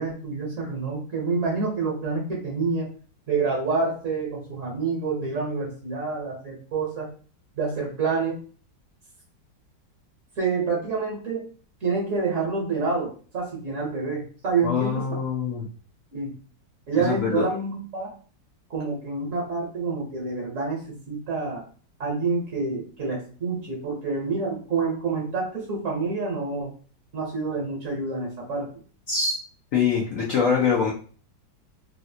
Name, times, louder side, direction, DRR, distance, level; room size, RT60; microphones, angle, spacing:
voice 1, 0.0-2.9 3.3-7.1 7.6-8.4 10.4-11.4 11.8-15.0 16.1-16.3 16.9-18.1 18.7-21.6 22.0-26.7 27.1-28.7, right 4 dB, 50° right, -2 dB, 1.1 m, -27 dB
voice 2, 14.6-15.7 17.0-17.4 29.1-29.4 29.7-30.9, left 6 dB, 60° left, -5 dB, 0.9 m, -24 dB
3.3 x 2.6 x 2.7 m, 0.41 s
omnidirectional pair, 1.9 m